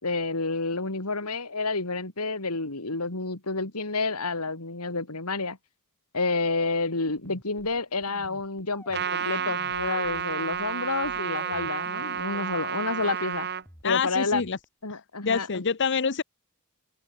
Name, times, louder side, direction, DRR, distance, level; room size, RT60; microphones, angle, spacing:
voice 1, 0.0-5.6 6.1-13.5 13.8-14.4 14.8-15.6, left 3 dB, 85° left, 3.3 m, -29 dB
sound 1, 7.2-12.7 13.0-14.8, left 1 dB, 10° left, 6.3 m, -50 dB
Trumpet, 8.9-13.6, right 7 dB, 50° right, 2.6 m, -31 dB
voice 2, 13.8-14.6 14.9-16.2, left 5 dB, 55° left, 0.9 m, -27 dB
open air
head